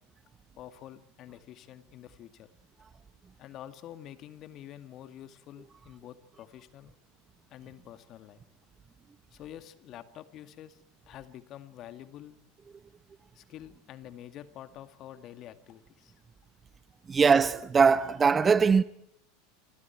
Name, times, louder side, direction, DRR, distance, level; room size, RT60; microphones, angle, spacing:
voice 1, 0.6-2.5 3.4-6.9 7.5-8.4 9.3-10.8 11.1-12.3 13.3-16.2, left 11 dB, 45° left, 2.2 m, -47 dB
voice 2, 17.1-18.8, right 5 dB, 25° right, 1.0 m, -21 dB
28.5 x 27.0 x 4.6 m
hypercardioid pair, 85°, 0 cm